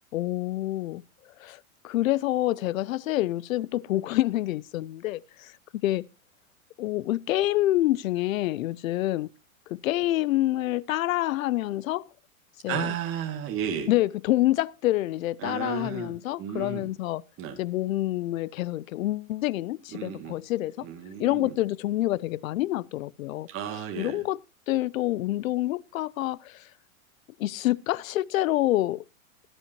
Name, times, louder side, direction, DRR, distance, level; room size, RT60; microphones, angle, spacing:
voice 1, 0.1-1.0 1.4-5.5 5.8-6.0 6.8-9.3 9.7-12.1 12.6-12.9 13.9-17.2 17.6-20.9 21.2-23.5 24.0-26.7 27.4-29.0, left 15 dB, 70° left, 0.7 m, -27 dB
voice 2, 12.7-13.9 15.4-16.9 17.4-17.6 19.9-20.4 20.8-21.5 23.5-24.2, right 8 dB, 30° right, 2.5 m, -33 dB
17.5 x 11.0 x 3.0 m
supercardioid pair, 140°, 42 cm